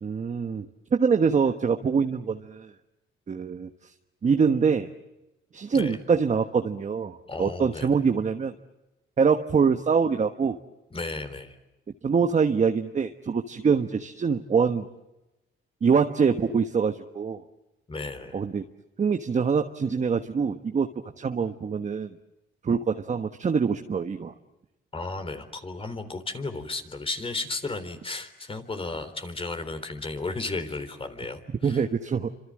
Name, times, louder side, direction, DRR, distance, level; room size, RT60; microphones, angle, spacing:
voice 1, 0.0-2.7 3.3-3.7 4.2-4.9 5.5-8.5 9.2-10.6 12.0-14.9 15.8-17.4 18.3-18.6 19.0-22.1 22.6-24.3 31.6-32.3, right 5 dB, 35° right, 6 dB, 1.3 m, -24 dB
voice 2, 7.3-8.0 10.9-11.6 17.9-18.4 24.9-31.8, left 3 dB, 25° left, 8 dB, 3.8 m, -34 dB
28.0 x 26.5 x 7.6 m, 0.99 s
cardioid pair, 90°, 20 cm